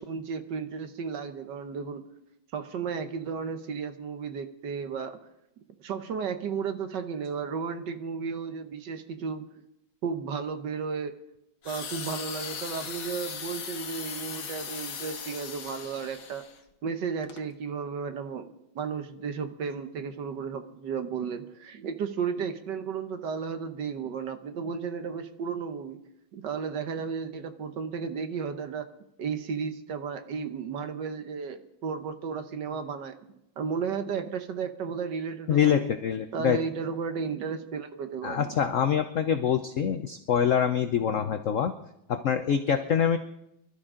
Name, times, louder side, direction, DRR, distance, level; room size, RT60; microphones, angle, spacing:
voice 1, 0.0-2.0 2.5-5.2 5.8-9.5 10.0-11.1 11.6-16.5 16.8-26.0 26.3-28.9 29.2-33.1 33.6-35.9 36.3-38.6, right 6 dB, 65° right, 9 dB, 1.5 m, -34 dB
sound 1, 11.6-16.6 17.2-17.4, left 7 dB, 50° left, 1.2 m, -38 dB
voice 2, 35.5-36.6 38.2-41.7 42.1-43.2, left 8 dB, 80° left, 8 dB, 0.7 m, -25 dB
24.5 x 12.5 x 3.8 m, 0.85 s
omnidirectional pair, 2.2 m